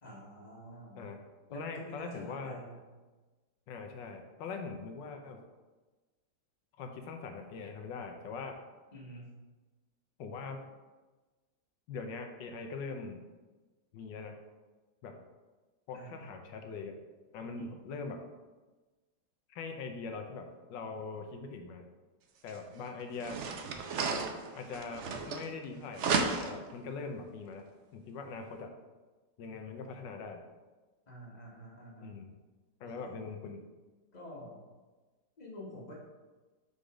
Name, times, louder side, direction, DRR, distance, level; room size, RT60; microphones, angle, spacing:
voice 1, 0.0-1.1 1.5-2.8 8.9-9.3 15.9-16.3 17.6-17.8 31.1-32.2 32.8-33.1 34.1-34.6 35.4-35.9, equal, 25° left, -5 dB, 1.5 m, -48 dB
voice 2, 1.5-2.6 3.7-5.4 6.8-8.6 10.2-10.6 11.9-13.2 13.9-14.4 15.0-15.1 15.9-17.0 17.3-18.2 19.5-21.8 22.4-23.4 24.5-27.7 27.9-28.7 29.4-30.4 32.0-32.3 32.8-33.6, left 4 dB, 85° left, 5 dB, 1.4 m, -42 dB
sound 1, 22.5-22.6 23.1-25.7 26.0-26.7, right 4 dB, 75° right, 0.6 m, -33 dB
5.4 x 4.1 x 4.9 m, 1.2 s
omnidirectional pair, 1.9 m